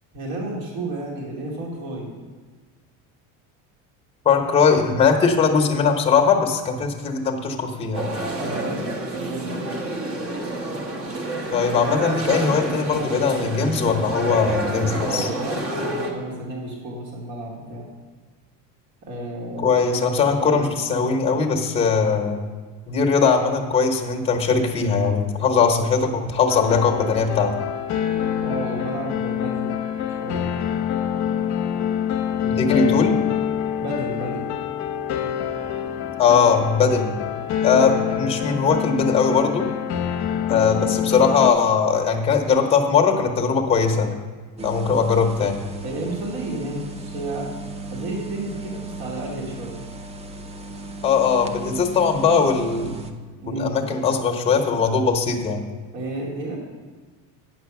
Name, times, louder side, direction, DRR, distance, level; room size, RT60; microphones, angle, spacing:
voice 1, 0.1-2.1 8.3-9.6 15.0-17.9 19.0-20.7 28.4-29.7 30.2-30.5 33.8-34.5 37.7-37.9 45.8-47.5 47.9-49.8 53.4-53.8 55.9-56.6, right 2 dB, 70° right, -2 dB, 2.4 m, -32 dB
voice 2, 4.2-8.1 11.5-15.3 19.6-22.4 22.9-27.5 32.4-33.2 36.2-37.1 37.6-39.7 40.5-44.1 44.6-45.6 51.0-53.0 53.5-55.6, left 5 dB, 15° left, 2 dB, 1.0 m, -20 dB
sound 1, 7.9-16.1, right 1 dB, 35° right, 1.1 m, -28 dB
sound 2, 26.5-41.5, left 9 dB, 45° left, 0.7 m, -26 dB
sound 3, 44.6-53.1, right 3 dB, 15° right, 0.4 m, -36 dB
8.8 x 6.3 x 6.0 m, 1.4 s
cardioid pair, 150°, 39 cm